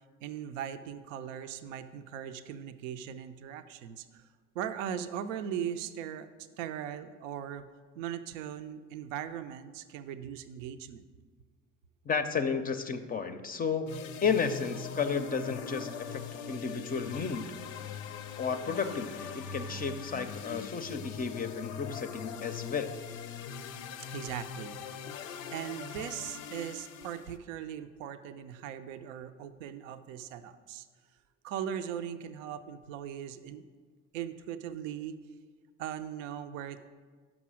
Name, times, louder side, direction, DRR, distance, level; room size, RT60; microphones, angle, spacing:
voice 1, 0.2-4.3 4.5-6.3 6.6-7.6 8.0-11.1 24.1-24.8 25.5-30.9 31.4-33.7 34.1-35.1 35.8-36.8, right 9 dB, 70° right, 10 dB, 0.5 m, -39 dB
voice 2, 12.1-16.2 16.5-17.5 17.8-18.0 18.4-22.9, left 5 dB, 25° left, 9 dB, 0.5 m, -33 dB
sound 1, 13.9-27.4, left 6 dB, 80° left, 0.5 m, -41 dB
6.0 x 5.4 x 6.1 m, 1.5 s
hypercardioid pair, 60°, 39 cm